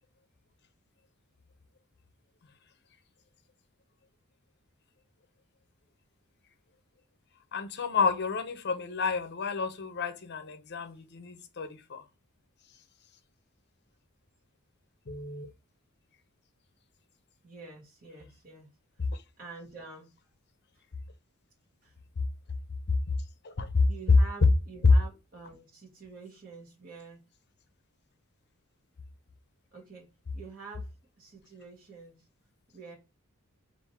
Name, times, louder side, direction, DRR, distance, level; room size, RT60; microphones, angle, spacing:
voice 1, 7.5-12.0 15.1-15.5 23.4-23.9, left 5 dB, 50° left, 0.6 m, -31 dB
voice 2, 17.4-18.7 19.4-20.1 21.8-21.9 23.8-27.2 29.7-30.9 31.2-32.2 32.7-32.9, right 4 dB, 45° right, 1.4 m, -47 dB
3.6 x 2.6 x 4.2 m
head